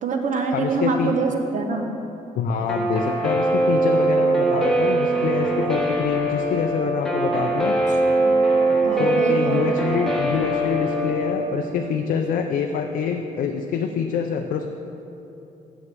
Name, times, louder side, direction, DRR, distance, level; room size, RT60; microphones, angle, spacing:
voice 1, 0.0-1.9 8.1-8.3 8.8-9.7, right 4 dB, 60° right, 4 dB, 1.0 m, -25 dB
voice 2, 0.5-1.1 2.3-7.8 8.9-14.7, left 6 dB, 80° left, 4 dB, 0.5 m, -26 dB
Guitar, 2.7-11.4, right 2 dB, 5° left, 1.2 m, -21 dB
7.3 x 6.4 x 7.5 m, 3.0 s
cardioid pair, 120°, 14 cm